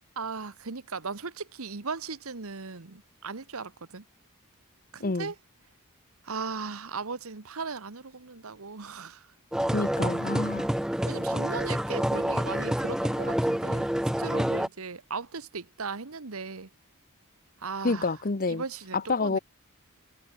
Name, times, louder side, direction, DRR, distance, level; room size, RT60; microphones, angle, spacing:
voice 1, 0.2-4.0 4.9-5.3 6.2-9.3 11.0-13.9 14.2-16.7 17.6-18.1 18.5-19.4, right 4 dB, 75° right, 1.3 m, -37 dB
voice 2, 5.0-5.3 9.7-10.7 17.8-18.6 18.9-19.4, left 3 dB, 40° left, 0.9 m, -28 dB
sound 1, 9.5-14.7, equal, 5° right, 0.4 m, -28 dB
head